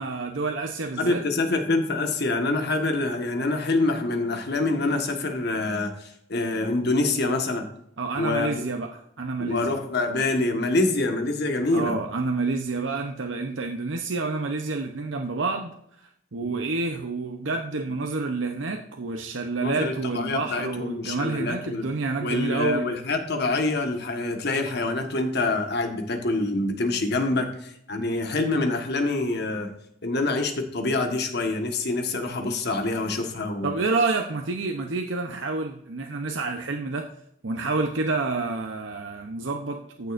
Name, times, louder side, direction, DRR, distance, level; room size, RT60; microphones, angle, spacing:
voice 1, 0.0-1.2 8.0-9.8 11.7-15.7 16.0-22.8 33.6-37.1 37.4-40.1, right 3 dB, 85° right, 4 dB, 0.8 m, -28 dB
voice 2, 1.0-7.7 8.2-8.6 9.4-12.0 16.4-16.5 19.6-21.8 22.2-29.7 30.0-33.8, left 2 dB, 60° left, 5 dB, 1.5 m, -26 dB
15.0 x 6.7 x 2.6 m, 0.72 s
head